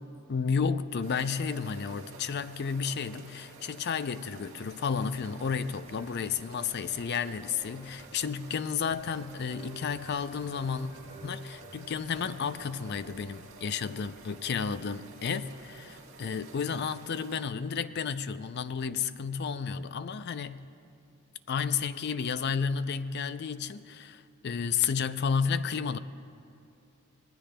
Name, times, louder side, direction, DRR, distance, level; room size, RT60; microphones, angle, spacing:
voice 1, 0.3-10.9 11.2-20.7 21.5-26.0, left 6 dB, 50° left, 0.4 m, -32 dB
sound 1, 1.0-17.4, right 3 dB, 70° right, 1.7 m, -51 dB
sound 2, 5.4-16.3, right 3 dB, 45° right, 3.2 m, -54 dB
25.5 x 19.0 x 2.2 m
head